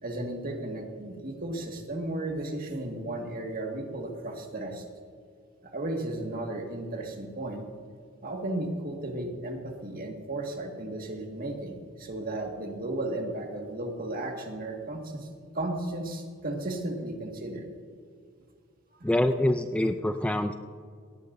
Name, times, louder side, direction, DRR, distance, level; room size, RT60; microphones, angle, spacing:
voice 1, 0.0-4.8 5.6-7.6 8.2-15.3 15.5-17.7 19.0-19.1, right 1 dB, 45° right, 2 dB, 1.9 m, -34 dB
voice 2, 19.0-20.5, left 1 dB, 5° left, 7 dB, 0.4 m, -25 dB
17.5 x 17.0 x 2.7 m, 2.1 s
head